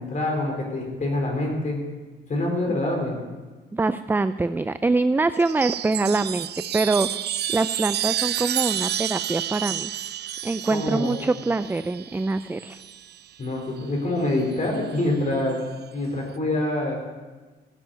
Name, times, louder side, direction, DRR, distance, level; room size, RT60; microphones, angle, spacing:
voice 1, 0.0-1.8 2.3-3.2 10.7-11.1 13.4-15.6 15.9-17.0, left 1 dB, 40° left, 0 dB, 4.0 m, -26 dB
voice 2, 3.7-6.5 6.7-7.1 7.5-9.9 10.4-12.8, right 3 dB, 10° right, 12 dB, 0.4 m, -24 dB
Chime, 5.4-13.2 14.4-15.0, right 11 dB, 55° right, 0.5 m, -30 dB
15.5 x 7.3 x 9.2 m, 1.3 s
cardioid pair, 90°, 20 cm